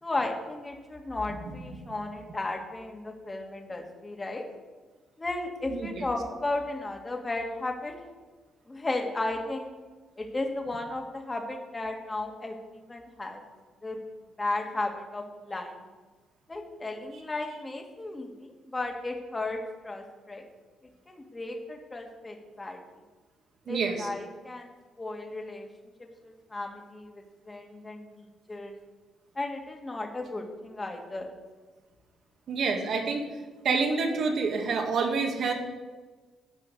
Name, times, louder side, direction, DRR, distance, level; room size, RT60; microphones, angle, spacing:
voice 1, 0.0-4.5 5.2-7.9 8.7-9.7 10.2-13.4 13.8-14.0 14.4-15.9 16.5-20.5 21.1-22.8 23.7-25.7 26.0-28.1 28.5-28.7 29.3-31.3, left 2 dB, 20° left, 2 dB, 2.1 m, -34 dB
voice 2, 5.7-6.0 23.7-24.1 32.5-33.2 33.6-35.5, right 4 dB, 60° right, 3 dB, 2.1 m, -27 dB
12.0 x 5.8 x 8.2 m, 1.3 s
cardioid pair, 90°, 0 cm